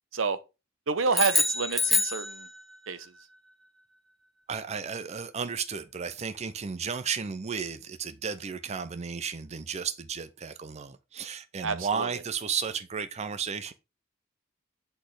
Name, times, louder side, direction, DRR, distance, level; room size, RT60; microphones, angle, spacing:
voice 1, 0.9-2.5 2.9-3.1 11.6-12.1, right 4 dB, 80° right, 0.9 m, -28 dB
sound 1, 1.1-2.9, left 2 dB, ahead, 1.0 m, -26 dB
voice 2, 4.5-13.7, right 6 dB, 35° right, 0.5 m, -33 dB
8.0 x 4.2 x 4.8 m
head